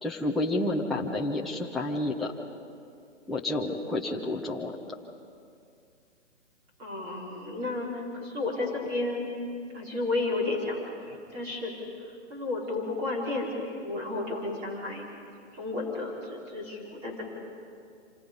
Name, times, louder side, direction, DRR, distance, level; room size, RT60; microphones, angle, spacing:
voice 1, 0.0-2.3 3.3-4.7, left 1 dB, ahead, -4 dB, 0.7 m, -30 dB
voice 2, 6.8-9.3 9.7-11.7 12.3-15.1 15.5-17.2, left 2 dB, 20° right, -3 dB, 4.6 m, -32 dB
27.0 x 26.5 x 5.4 m, 2.4 s
hypercardioid pair, 155°, 37 cm